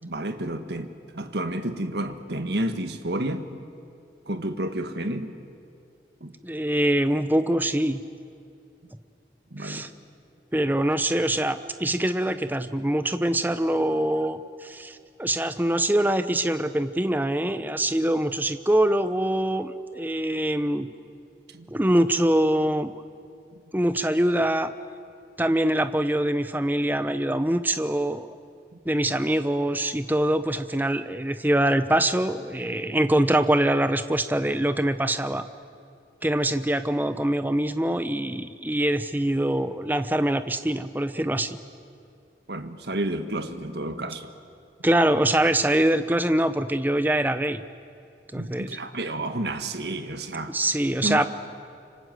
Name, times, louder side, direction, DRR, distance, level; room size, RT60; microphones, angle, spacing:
voice 1, 0.0-3.6 4.3-5.3 6.2-6.3 9.5-9.9 21.5-21.7 42.5-44.3 48.3-50.6 51.0-51.3, right 1 dB, 70° right, 8 dB, 1.6 m, -30 dB
voice 2, 6.4-8.0 9.6-9.9 10.5-20.9 21.7-22.9 23.7-24.7 25.4-28.3 28.8-35.5 36.2-41.6 44.8-47.6 48.3-48.8 50.5-51.3, right 1 dB, 10° right, 11 dB, 0.8 m, -24 dB
26.5 x 25.5 x 7.8 m, 2.4 s
head